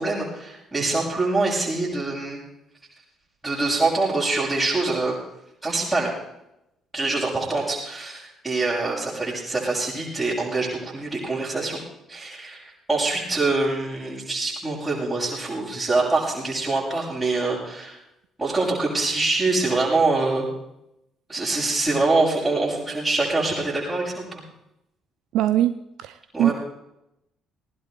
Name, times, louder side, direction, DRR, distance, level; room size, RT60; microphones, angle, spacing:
voice 1, 0.0-2.4 3.4-5.2 5.6-6.1 6.9-11.8 12.1-18.0 18.4-20.4 21.3-24.4 26.3-26.5, right 3 dB, 15° right, -9 dB, 7.3 m, -24 dB
voice 2, 25.3-25.7 26.0-26.5, right 12 dB, 60° right, 13 dB, 0.5 m, -21 dB
19.0 x 18.5 x 3.4 m, 0.83 s
figure-of-eight pair, 45°, 0 cm